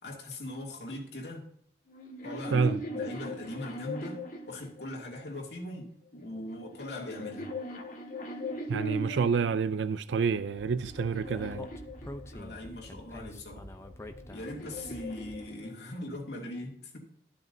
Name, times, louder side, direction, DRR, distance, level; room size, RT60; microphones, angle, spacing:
voice 1, 0.0-1.5 2.2-7.5 12.3-13.6 14.3-17.0, left 1 dB, 70° left, 2.5 m, -40 dB
sound 1, 1.9-5.3 6.2-9.6 10.2-12.7 13.7-16.1, left 1 dB, 45° left, 1.9 m, -40 dB
voice 2, 8.7-11.7, right 5 dB, 85° right, 0.4 m, -28 dB
Speech, 10.6-15.5, left 1 dB, 15° left, 0.7 m, -46 dB
12.5 x 12.0 x 2.7 m
head